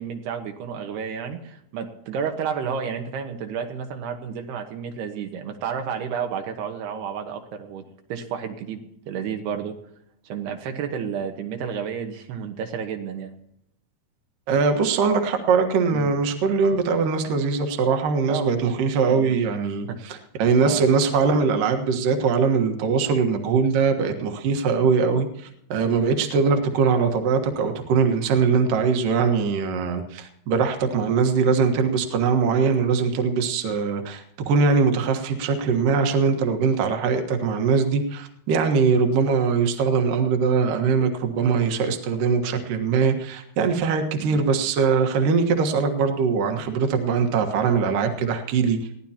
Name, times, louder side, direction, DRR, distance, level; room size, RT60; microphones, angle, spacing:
voice 1, 0.0-7.8 8.1-9.8 10.3-13.3 15.9-16.1 18.3-19.4 19.9-20.0 20.6-20.9 25.9-26.2 44.2-44.4, right 7 dB, 80° right, 4 dB, 3.4 m, -31 dB
voice 2, 14.5-25.3 25.7-48.8, right 5 dB, 65° right, 5 dB, 2.9 m, -21 dB
22.0 x 16.5 x 2.9 m, 0.73 s
omnidirectional pair, 4.5 m